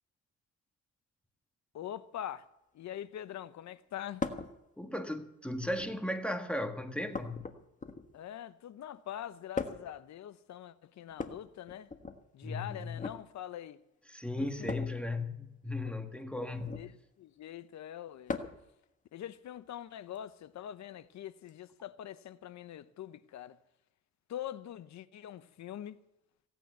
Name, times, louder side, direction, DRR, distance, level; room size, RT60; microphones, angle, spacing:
voice 1, 1.7-2.5 2.7-4.2 8.1-11.9 12.3-13.8 14.4-14.7 15.8-15.9 16.8-16.9 17.2-18.4 19.1-23.6 24.3-26.0, left 11 dB, 65° left, 0.9 m, -44 dB
sound 1, 4.2-4.5 5.6-6.1 7.1-8.2 9.5-10.0 11.1-12.2 12.9-13.2 14.7-15.0 16.5-16.9 18.3-18.7 20.1-20.2 21.5-21.6, left 4 dB, 25° left, 1.4 m, -39 dB
voice 2, 4.8-7.5 12.4-13.0 14.1-16.9, left 1 dB, 5° left, 1.6 m, -36 dB
16.5 x 9.2 x 8.0 m
cardioid pair, 90°, 30 cm